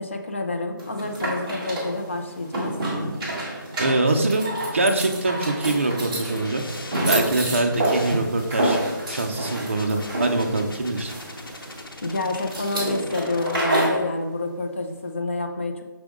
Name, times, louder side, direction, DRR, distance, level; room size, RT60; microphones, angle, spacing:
voice 1, 0.0-2.7 12.0-15.8, left 2 dB, 35° left, 4 dB, 0.6 m, -28 dB
sound 1, 0.8-14.0, right 1 dB, 20° right, 1.5 m, -28 dB
voice 2, 3.8-4.4 4.7-6.6 7.1-8.8 9.1-11.1, right 2 dB, 35° right, 4 dB, 0.6 m, -23 dB
sound 2, 6.1-13.6, left 2 dB, 80° left, 1.0 m, -42 dB
6.0 x 5.0 x 3.7 m, 1.2 s
figure-of-eight pair, 175°, 11 cm